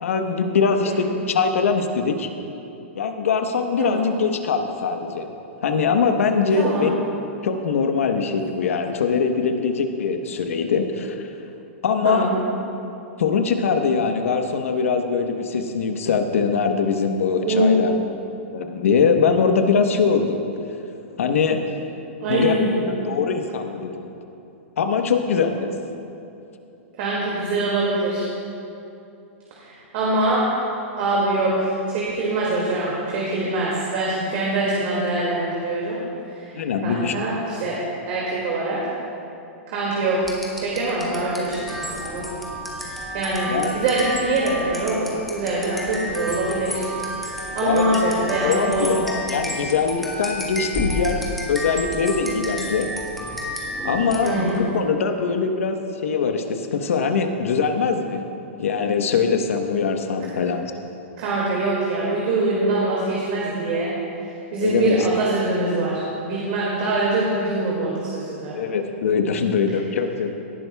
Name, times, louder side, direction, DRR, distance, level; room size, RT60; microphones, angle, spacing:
voice 1, 0.0-2.3 3.0-5.3 5.6-7.0 7.4-11.3 11.8-12.3 13.2-17.9 18.5-20.4 21.2-21.6 22.3-22.6 23.1-24.1 24.8-25.7 36.5-37.2 43.5-43.7 47.6-52.9 53.8-58.2 58.6-60.7 64.6-65.1 68.5-70.4, left 5 dB, 80° left, 6 dB, 1.0 m, -22 dB
voice 2, 6.6-6.9 12.0-12.4 17.4-18.0 22.2-22.9 27.0-28.3 29.6-30.5 31.0-36.0 36.3-37.8 38.1-38.8 39.7-40.3 40.6-42.3 43.1-46.9 47.5-48.9 54.2-54.6 61.2-63.9 64.2-68.6, right 2 dB, 50° right, -5 dB, 2.1 m, -23 dB
sound 1, 40.2-54.7, equal, ahead, 1.4 m, -31 dB
18.0 x 11.0 x 2.3 m, 2.8 s
hypercardioid pair, 135°, 7 cm